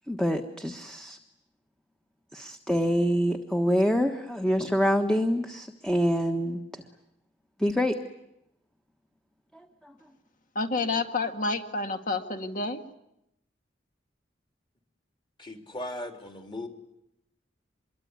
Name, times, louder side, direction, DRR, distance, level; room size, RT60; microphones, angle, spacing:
voice 1, 0.1-1.2 2.3-6.8 7.6-7.9 9.5-9.9, equal, 5° left, 5 dB, 1.3 m, -26 dB
voice 2, 10.6-12.8, left 3 dB, 45° left, 6 dB, 2.0 m, -29 dB
voice 3, 15.4-16.7, left 1 dB, 25° left, 4 dB, 3.3 m, -37 dB
25.5 x 23.0 x 9.7 m, 0.84 s
head